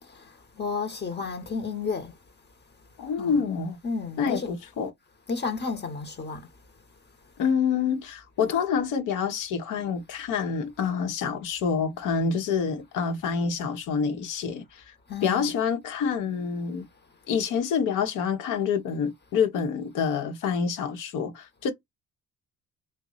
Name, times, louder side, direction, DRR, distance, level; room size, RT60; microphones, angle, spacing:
voice 1, 0.0-2.2 3.2-3.4 3.8-4.6 5.3-6.5 15.1-15.5, left 4 dB, 35° left, 0.9 m, -32 dB
voice 2, 3.0-3.8 4.2-4.9 7.4-14.9 15.2-16.8 17.3-21.7, left 6 dB, 85° left, 1.0 m, -27 dB
3.0 x 2.2 x 3.8 m
cardioid pair, 90°, 30 cm